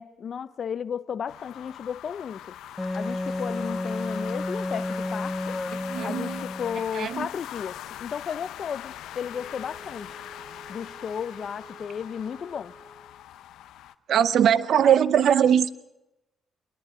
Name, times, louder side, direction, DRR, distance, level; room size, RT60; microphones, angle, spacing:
voice 1, 0.0-2.5 2.9-5.6 6.0-10.2 10.7-12.7, left 7 dB, 50° left, 0.7 m, -34 dB
sound 1, 1.3-13.9, left 12 dB, 85° left, 0.8 m, -41 dB
Wind instrument woodwind instrument, 2.8-6.9, left 2 dB, 10° left, 0.6 m, -31 dB
voice 2, 5.9-6.4 6.9-7.3 14.1-15.7, right 9 dB, 65° right, 0.8 m, -21 dB
Wind instrument woodwind instrument 2, 9.3-13.3, right 2 dB, 10° right, 5.1 m, -50 dB
28.0 x 11.5 x 8.9 m
cardioid pair, 90°, 0 cm